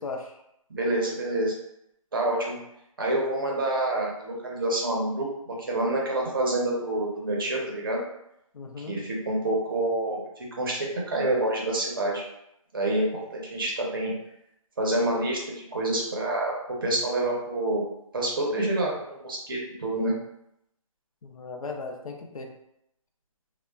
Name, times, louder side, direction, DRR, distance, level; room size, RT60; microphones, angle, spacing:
voice 1, 0.7-1.5 2.1-2.6 3.0-8.0 8.8-10.2 10.6-12.2 12.7-13.1 13.3-14.1 14.8-17.8 18.1-20.1, right 1 dB, 40° right, -2 dB, 0.6 m, -27 dB
voice 2, 8.5-9.0 21.2-22.5, left 3 dB, 70° left, 2 dB, 0.5 m, -37 dB
2.7 x 2.1 x 2.3 m, 0.79 s
hypercardioid pair, 170°, 18 cm